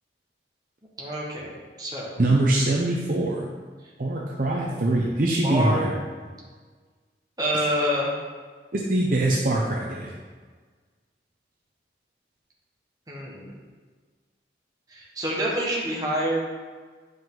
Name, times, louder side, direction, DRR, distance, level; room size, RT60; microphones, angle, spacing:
voice 1, 1.0-1.5 1.8-2.1 5.4-5.9 7.4-8.1 13.1-13.5 14.9-16.4, equal, 20° right, -4 dB, 1.5 m, -27 dB
voice 2, 2.2-3.4 4.0-5.9 8.7-10.1, right 2 dB, 50° right, -2 dB, 0.7 m, -23 dB
9.3 x 5.2 x 3.9 m, 1.5 s
head